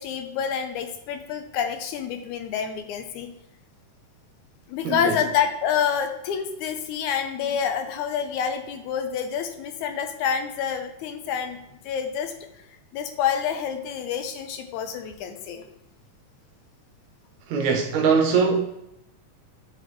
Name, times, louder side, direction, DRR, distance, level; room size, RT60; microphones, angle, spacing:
voice 1, 0.0-3.3 4.7-12.3 12.9-15.6, left 8 dB, 80° left, 7 dB, 1.9 m, -28 dB
voice 2, 4.9-5.2 17.5-18.6, right 5 dB, 80° right, 3 dB, 1.8 m, -21 dB
7.7 x 4.1 x 3.0 m, 0.84 s
omnidirectional pair, 3.5 m